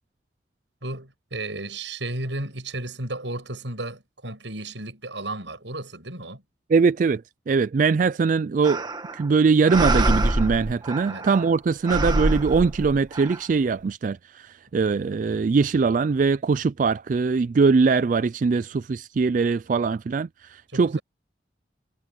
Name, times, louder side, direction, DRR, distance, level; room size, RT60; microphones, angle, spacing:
voice 1, 0.8-6.4 11.1-11.3 20.7-21.0, right 2 dB, 75° right, 7.8 m, -34 dB
voice 2, 6.7-8.9 9.1-21.0, right 4 dB, 45° right, 0.3 m, -22 dB
sound 1, 8.6-9.3 9.7-11.5 11.8-13.4, right 1 dB, 25° right, 1.6 m, -25 dB
head